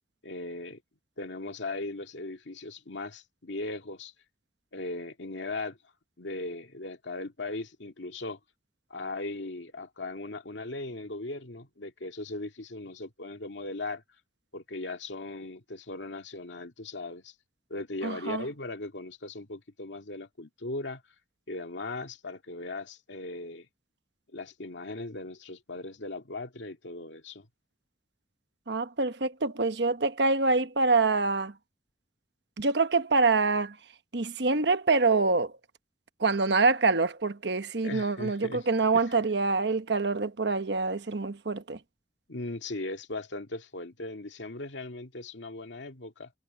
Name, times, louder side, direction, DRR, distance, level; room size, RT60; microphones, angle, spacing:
voice 1, 0.2-0.8 1.2-4.1 4.7-5.8 6.2-8.4 8.9-14.0 14.5-17.3 17.7-21.0 21.5-23.7 24.3-27.5 37.8-38.7 38.9-39.0 42.3-46.3, left 2 dB, 85° left, 2.1 m, -38 dB
voice 2, 18.0-18.4 28.7-31.5 32.6-33.8 34.1-35.5 36.2-41.8, right 3 dB, 70° right, 1.1 m, -26 dB
head